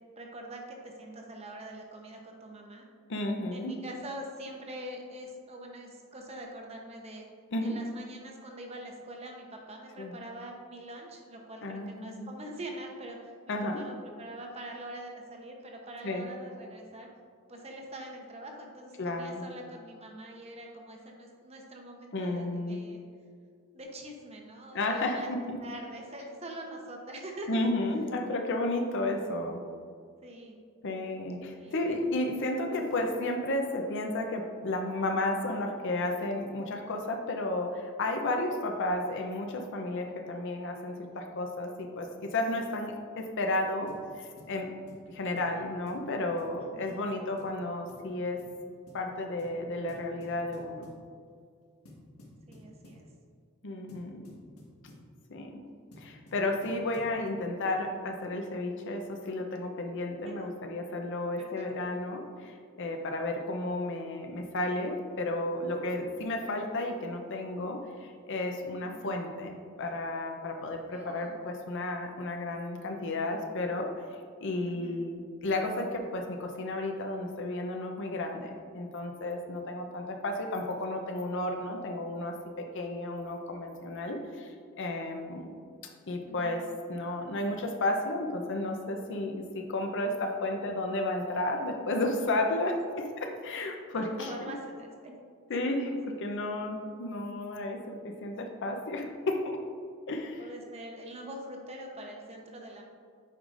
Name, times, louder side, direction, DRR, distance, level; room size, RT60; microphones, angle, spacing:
voice 1, 0.2-2.9 3.5-7.3 7.6-17.1 17.5-23.0 23.7-25.3 25.6-27.6 30.2-30.5 31.6-31.7 46.6-47.0 52.5-53.0 60.0-60.5 61.4-61.6 68.8-69.1 70.9-71.4 74.6-75.0 84.0-84.5 86.2-86.7 92.6-93.1 93.9-95.2 100.4-102.8, right 1 dB, 30° right, 1 dB, 0.8 m, -44 dB
voice 2, 3.1-3.7 7.5-7.8 10.0-10.1 11.6-12.3 13.5-13.8 16.0-16.3 19.0-19.5 22.1-22.9 24.7-25.4 27.5-29.6 30.8-44.7 45.1-48.4 48.9-50.9 53.6-54.2 55.3-55.6 56.0-73.9 74.4-84.5 84.8-85.5 86.1-86.6 86.9-92.7 93.4-94.5 95.5-99.6 100.1-100.5, left 2 dB, 55° left, 3 dB, 0.6 m, -33 dB
sound 1, 43.9-44.1 44.4-44.6 44.9-45.1 45.4-45.5 45.9-46.1 46.4-46.6 46.9-47.0 47.4-47.6 47.9-48.1 48.4-48.6 48.9-49.0 49.4-49.6 49.9-51.0 51.9-53.1 53.9-55.1 55.9-57.2, left 1 dB, 90° left, 1.5 m, -52 dB
8.7 x 4.9 x 2.5 m, 2.1 s
head